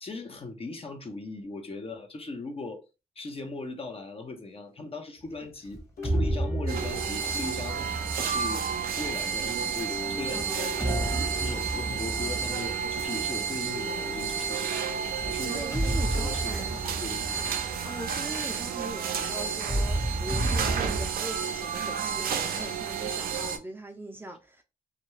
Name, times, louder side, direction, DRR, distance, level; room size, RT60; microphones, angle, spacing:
voice 1, 0.0-2.8 3.2-8.7 9.0-10.8 11.4-14.6 15.2-15.7 16.1-17.5, left 3 dB, 40° left, 0.8 m, -39 dB
sound 1, 5.7-9.4 10.2-13.8 15.1-19.1 19.6-21.1, right 1 dB, 20° left, 1.2 m, -32 dB
sound 2, 6.0-8.5 9.9-12.4 13.7-16.2, left 3 dB, 70° left, 0.9 m, -42 dB
sound 3, 6.7-23.6, right 7 dB, 75° right, 0.5 m, -31 dB
voice 2, 10.3-11.0 15.5-16.8 17.8-24.6, right 2 dB, 15° right, 0.5 m, -40 dB
2.5 x 2.2 x 3.1 m
cardioid pair, 65°, 15 cm